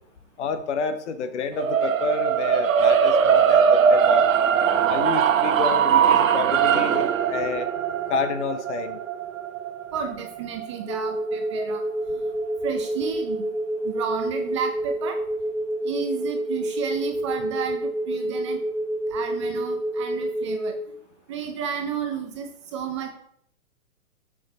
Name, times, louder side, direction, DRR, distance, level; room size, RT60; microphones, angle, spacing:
voice 1, 0.4-4.2 4.9-7.7 8.1-9.0, left 5 dB, 55° left, 10 dB, 1.0 m, -29 dB
sound 1, 1.6-11.8, right 7 dB, 65° right, 0.9 m, -21 dB
voice 2, 9.9-11.8 12.1-12.2 12.6-13.5 13.8-15.2 15.8-18.6 19.1-20.8 21.3-23.1, right 7 dB, 20° right, 5 dB, 0.5 m, -32 dB
sound 2, 10.9-20.7, right 1 dB, 5° left, 2.4 m, -28 dB
6.4 x 6.0 x 4.0 m, 0.70 s
hypercardioid pair, 135°, 42 cm